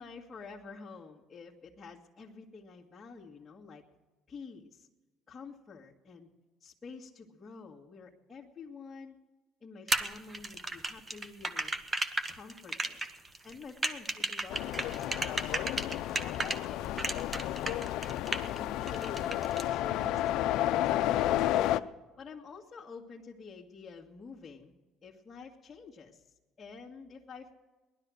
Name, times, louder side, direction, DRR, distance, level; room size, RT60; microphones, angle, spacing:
voice 1, 0.0-3.8 4.3-4.9 5.3-6.3 6.6-9.2 9.6-11.7 12.3-13.0 13.4-15.5 16.2-17.7 18.4-19.4 19.7-21.7 22.2-27.5, left 4 dB, 20° left, -7 dB, 2.0 m, -48 dB
sound 1, 9.9-16.6 17.0-18.6 18.9-19.6, right 2 dB, 20° right, 1.2 m, -33 dB
sound 2, 14.5-21.8, left 13 dB, 75° left, 0.6 m, -31 dB
19.0 x 12.0 x 6.3 m, 1.2 s
cardioid pair, 115°, 0 cm